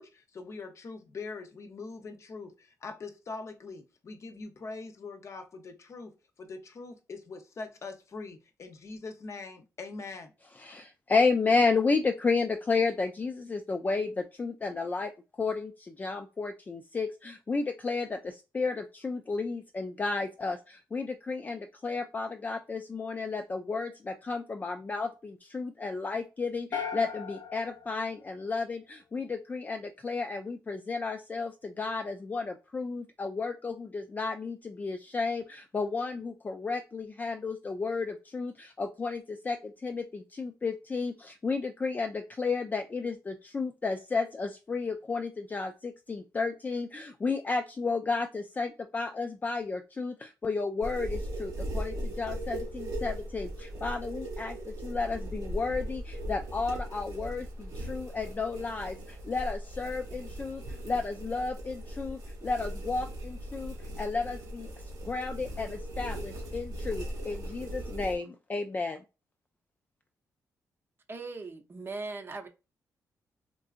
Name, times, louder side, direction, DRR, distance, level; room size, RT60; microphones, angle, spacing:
voice 1, 0.0-10.3, left 3 dB, 50° left, 0.7 m, -43 dB
voice 2, 10.6-64.7 65.0-69.0, left 4 dB, 25° left, 0.3 m, -32 dB
sound 1, 26.7-29.0, left 7 dB, 80° left, 0.7 m, -39 dB
sound 2, 50.8-68.1, right 1 dB, 85° right, 1.1 m, -38 dB
voice 3, 71.1-72.5, right 3 dB, 35° right, 0.7 m, -39 dB
3.7 x 2.4 x 2.4 m
cardioid pair, 100°, 6 cm